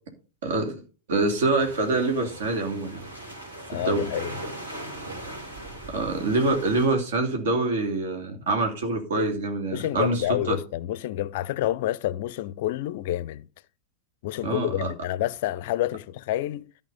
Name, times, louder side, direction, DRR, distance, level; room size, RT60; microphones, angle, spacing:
voice 1, 0.4-0.8 1.1-3.0 3.8-4.0 5.9-10.6 14.4-14.9, right 3 dB, 60° right, 2.9 m, -25 dB
sound 1, 1.6-6.8, right 1 dB, 75° right, 4.2 m, -39 dB
voice 2, 3.7-4.3 9.7-13.5 14.2-16.7, left 13 dB, 50° left, 0.4 m, -28 dB
13.5 x 5.5 x 5.4 m
figure-of-eight pair, 90°, 0 cm